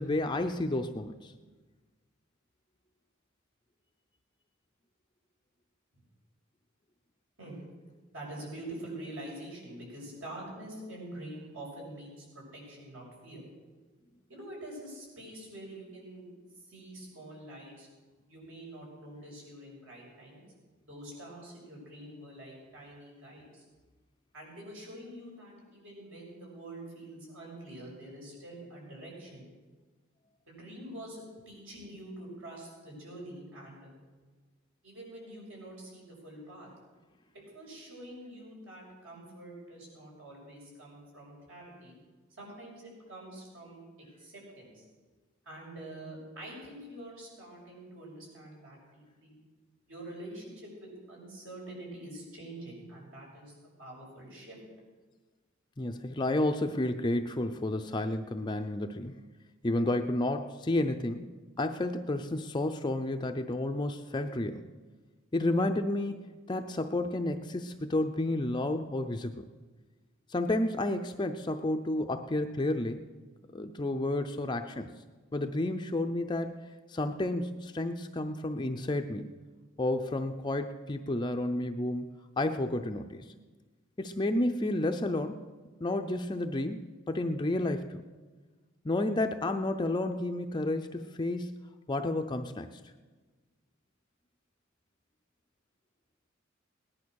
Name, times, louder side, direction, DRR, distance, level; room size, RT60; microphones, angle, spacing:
voice 1, 0.0-1.3 55.8-59.2 59.6-61.3 61.6-64.6 65.3-69.5 70.3-73.0 73.5-74.9 75.3-79.3 79.8-83.3 84.0-85.5 85.8-88.0 88.8-91.6 91.9-92.8, left 1 dB, 20° left, 5 dB, 0.5 m, -31 dB
voice 2, 8.1-13.4 14.3-17.9 18.3-20.4 20.8-23.6 24.3-29.5 30.4-33.9 34.8-36.7 37.3-41.9 42.4-43.8 44.2-44.8 45.4-49.4 49.9-54.6, right 1 dB, 70° right, -3 dB, 6.6 m, -46 dB
18.0 x 11.0 x 6.4 m, 1.3 s
head